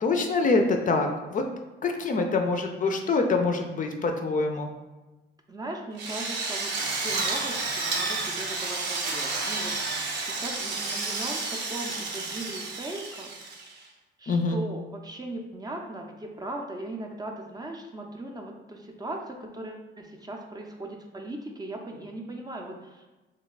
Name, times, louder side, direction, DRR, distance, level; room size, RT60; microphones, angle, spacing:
voice 1, 0.0-1.4 1.8-4.7 14.3-14.6, left 3 dB, 40° left, 4 dB, 0.4 m, -25 dB
voice 2, 5.5-13.3 14.2-23.0, right 1 dB, 20° right, 2 dB, 0.5 m, -38 dB
Drill, 6.0-13.8, right 3 dB, 60° right, 0.7 m, -31 dB
3.0 x 2.2 x 3.9 m, 1.1 s
cardioid pair, 90°, 20 cm